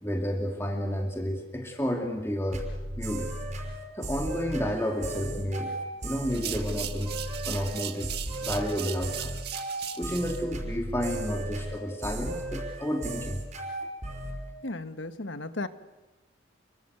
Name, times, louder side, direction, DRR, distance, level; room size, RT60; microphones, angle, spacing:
voice 1, 0.0-2.6 3.0-3.3 4.0-5.7 6.0-9.3 10.0-13.4, equal, 15° left, 1 dB, 2.5 m, -31 dB
sound 1, 2.5-14.4, right 1 dB, 35° right, 5.4 m, -35 dB
sound 2, 6.3-10.4, right 11 dB, 55° right, 1.7 m, -38 dB
voice 2, 14.6-15.7, left 2 dB, 75° left, 10 dB, 1.5 m, -35 dB
29.0 x 23.0 x 8.1 m, 1.1 s
head